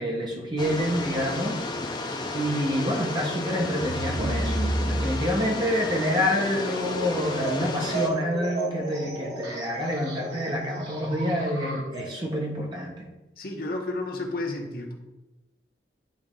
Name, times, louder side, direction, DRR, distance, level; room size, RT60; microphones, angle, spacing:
voice 1, 0.0-1.6 2.3-13.1, equal, 25° right, 0 dB, 1.3 m, -27 dB
sound 1, 0.6-8.1, left 2 dB, 25° left, 0.7 m, -33 dB
sound 2, 3.8-12.4, right 2 dB, 70° right, 1.5 m, -33 dB
voice 2, 13.4-14.9, left 2 dB, 55° left, 1 dB, 1.1 m, -31 dB
10.5 x 3.9 x 3.7 m, 1.0 s
head